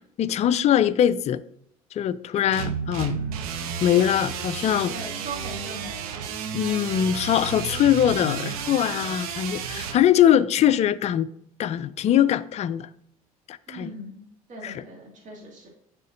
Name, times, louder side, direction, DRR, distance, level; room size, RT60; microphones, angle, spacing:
voice 1, 0.2-1.4 1.9-3.2 3.8-4.9 6.5-11.3 11.6-12.9 13.5-13.9 14.6-14.7, left 10 dB, 35° left, 0.4 m, -22 dB
sound 1, 2.5-10.0, right 7 dB, 70° right, 0.7 m, -32 dB
voice 2, 4.9-6.2 13.7-14.2 14.5-15.7, right 2 dB, 40° right, 2.1 m, -39 dB
10.5 x 3.7 x 2.6 m
figure-of-eight pair, 60°, 19 cm